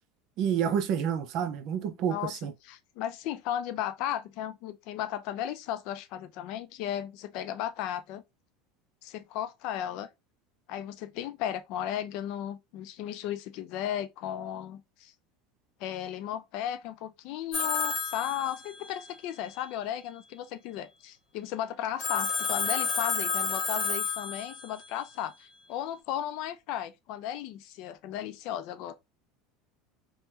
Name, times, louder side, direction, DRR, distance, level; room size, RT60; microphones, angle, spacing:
voice 1, 0.4-2.5, right 8 dB, 50° right, 0.6 m, -29 dB
voice 2, 2.1-8.2 9.0-10.1 10.7-15.1 15.8-28.9, left 11 dB, 60° left, 0.4 m, -35 dB
Telephone, 17.5-19.1 22.0-24.8, left 5 dB, 20° left, 1.1 m, -30 dB
3.3 x 2.1 x 2.9 m
supercardioid pair, 135°, 0 cm